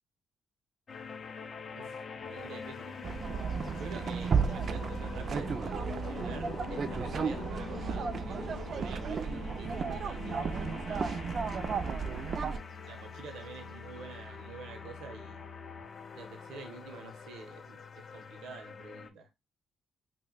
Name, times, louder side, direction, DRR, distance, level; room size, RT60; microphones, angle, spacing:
sound 1, 0.9-19.1, left 6 dB, 45° left, 0.4 m, -44 dB
voice 1, 1.7-3.1 3.7-11.2 12.8-15.5 16.1-19.3, right 4 dB, 80° right, 0.7 m, -48 dB
sound 2, 3.0-12.6, right 6 dB, 50° right, 0.3 m, -33 dB
2.5 x 2.1 x 3.7 m
cardioid pair, 90°, 0 cm